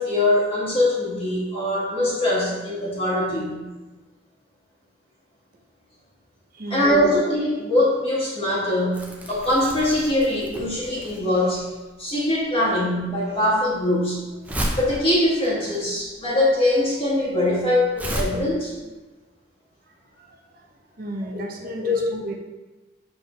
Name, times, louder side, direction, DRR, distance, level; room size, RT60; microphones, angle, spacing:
voice 1, 0.0-3.6 6.7-11.7 12.0-14.2 14.8-18.7 21.8-22.0, left 1 dB, 30° left, -7 dB, 2.0 m, -22 dB
voice 2, 6.5-7.0 21.0-22.4, right 1 dB, 55° right, 1 dB, 0.7 m, -33 dB
Crumpling crinkling, 8.9-18.2, right 1 dB, 10° right, 0.7 m, -33 dB
6.7 x 4.4 x 3.4 m, 1.2 s
head